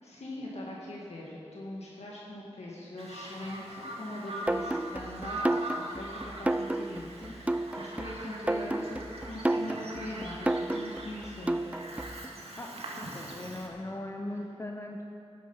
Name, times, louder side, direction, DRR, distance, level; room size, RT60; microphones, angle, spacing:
voice 1, 0.0-11.8, left 1 dB, 70° left, -5 dB, 2.1 m, -41 dB
Bird vocalization bird call bird song, 3.0-13.7, right 1 dB, 60° right, 2.0 m, -42 dB
sound 1, 4.5-12.3, right 1 dB, 10° right, 0.3 m, -32 dB
voice 2, 13.0-15.1, left 1 dB, 25° left, 2 dB, 0.9 m, -39 dB
13.0 x 9.9 x 5.6 m, 2.7 s
cardioid pair, 55°, 11 cm